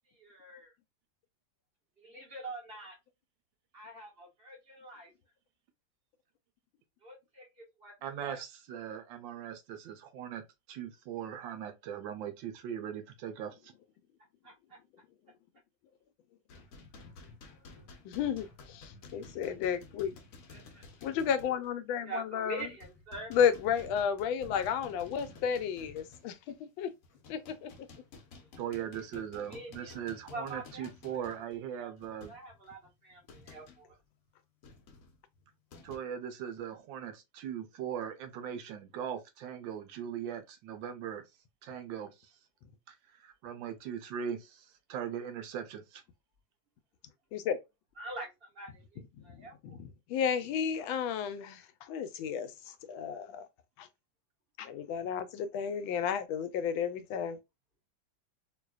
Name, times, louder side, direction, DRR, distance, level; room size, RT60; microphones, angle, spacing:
voice 1, 0.2-0.7 2.0-3.0 3.7-5.1 7.0-7.9 8.2-8.4 14.4-14.8 17.6-17.9 20.5-20.8 22.0-23.3 28.9-29.9 30.3-30.9 31.3-31.4 31.7-34.0 48.0-49.8, right 2 dB, 30° right, 1.4 m, -45 dB
voice 2, 8.0-13.7 28.6-32.3 35.8-41.2 41.6-42.3 42.9-46.0, right 9 dB, 75° right, 1.3 m, -40 dB
sound 1, 16.5-21.7 22.0-22.2 22.6-26.6 27.0-33.9 34.6-36.0, left 3 dB, 55° left, 1.0 m, -53 dB
voice 3, 18.0-20.2 21.0-22.7 23.3-26.9 27.3-27.7 47.3-47.6 49.3-49.8 50.1-53.5 53.8-53.9 54.6-57.4, left 8 dB, 85° left, 1.3 m, -32 dB
3.8 x 2.8 x 2.3 m
omnidirectional pair, 2.1 m